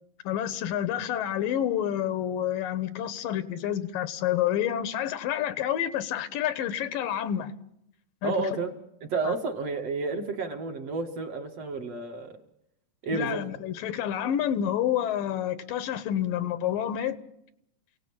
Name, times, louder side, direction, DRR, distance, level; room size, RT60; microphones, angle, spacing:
voice 1, 0.2-7.6 8.2-8.3 9.2-9.3 13.1-17.2, left 10 dB, 85° left, 2.9 m, -28 dB
voice 2, 8.2-8.7 9.0-12.3 13.0-13.4, right 3 dB, 50° right, 2.8 m, -31 dB
28.5 x 18.0 x 8.7 m
omnidirectional pair, 3.9 m